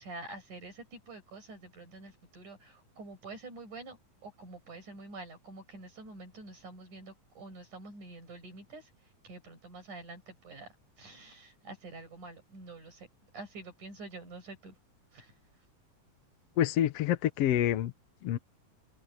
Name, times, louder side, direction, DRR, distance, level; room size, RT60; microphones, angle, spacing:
voice 1, 0.0-13.1 13.3-14.7 15.1-15.3, right 2 dB, 90° right, 9.5 m, -47 dB
voice 2, 16.6-17.9 18.2-18.4, left 11 dB, 65° left, 1.7 m, -27 dB
omnidirectional pair, 3.4 m